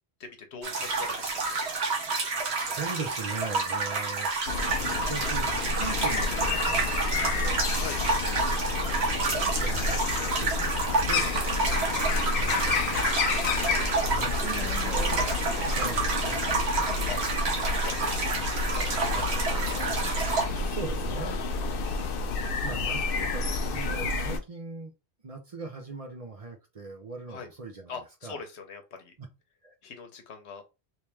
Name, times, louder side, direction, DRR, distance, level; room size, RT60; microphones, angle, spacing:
voice 1, 0.2-1.6 7.7-8.0 11.9-12.3 17.1-17.2 17.8-18.2 18.7-19.3 19.7-20.1 27.3-27.5 27.9-29.1 29.8-30.6, left 5 dB, 90° left, 1.1 m, -42 dB
sound 1, 0.6-20.4, right 4 dB, 85° right, 1.2 m, -29 dB
voice 2, 2.2-4.3 4.7-7.7 8.8-11.4 12.3-13.1 14.1-15.3 15.6-16.8 19.1-19.3 20.5-21.5 22.6-24.9 25.2-28.0 28.2-28.4 29.6-29.7, right 4 dB, 40° right, 0.6 m, -40 dB
sound 2, 4.5-24.4, left 3 dB, 65° left, 0.8 m, -30 dB
sound 3, 11.1-21.1, left 1 dB, 10° left, 1.0 m, -44 dB
3.0 x 3.0 x 3.3 m
omnidirectional pair, 1.1 m